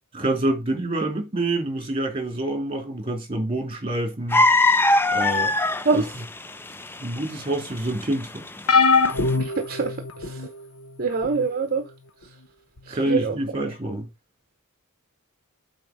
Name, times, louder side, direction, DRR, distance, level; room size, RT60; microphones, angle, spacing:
voice 1, 0.2-4.4 5.1-5.5 5.9-6.0 7.0-8.4 12.9-14.1, right 1 dB, 25° right, 3.0 m, -27 dB
sound 1, 4.3-9.3, left 2 dB, 10° left, 0.4 m, -20 dB
sound 2, 8.7-10.5 11.2-11.5 12.8-12.9, left 4 dB, 70° left, 1.0 m, -21 dB
voice 2, 9.4-10.5 11.0-11.9 12.9-13.4, right 4 dB, 45° right, 0.9 m, -25 dB
7.8 x 4.3 x 5.1 m
head